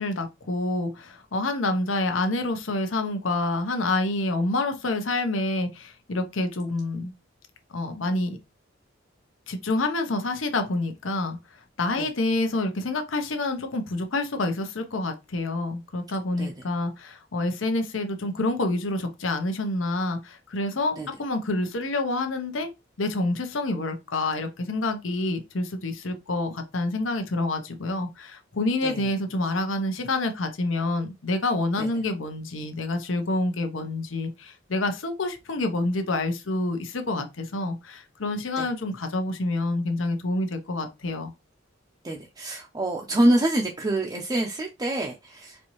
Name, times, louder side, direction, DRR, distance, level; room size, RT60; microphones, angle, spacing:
voice 1, 0.0-7.1 7.7-8.4 9.5-11.4 11.8-22.7 23.0-41.3, left 2 dB, 80° left, 0.8 m, -27 dB
voice 2, 42.0-45.6, right 1 dB, 20° right, 0.5 m, -26 dB
4.4 x 2.7 x 3.0 m
head